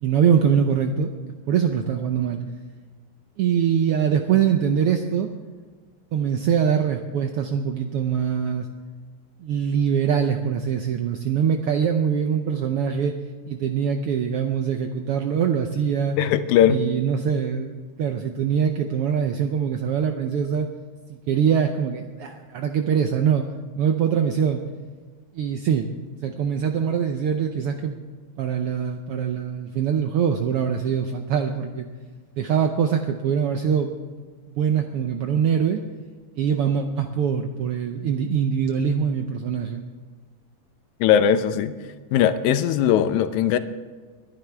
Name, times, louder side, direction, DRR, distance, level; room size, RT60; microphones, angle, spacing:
voice 1, 0.0-1.1 1.5-2.4 3.4-5.3 6.1-8.7 9.4-13.1 13.5-16.2 16.7-20.7 21.1-23.5 23.8-24.6 25.3-25.9 26.2-27.9 28.4-31.9 32.4-33.9 34.5-35.8 36.3-39.8, right 7 dB, 75° right, 5 dB, 1.3 m, -23 dB
voice 2, 16.2-16.8 41.0-41.7 42.1-43.6, left 9 dB, 85° left, 11 dB, 2.1 m, -19 dB
22.0 x 11.0 x 3.4 m, 1.5 s
omnidirectional pair, 3.4 m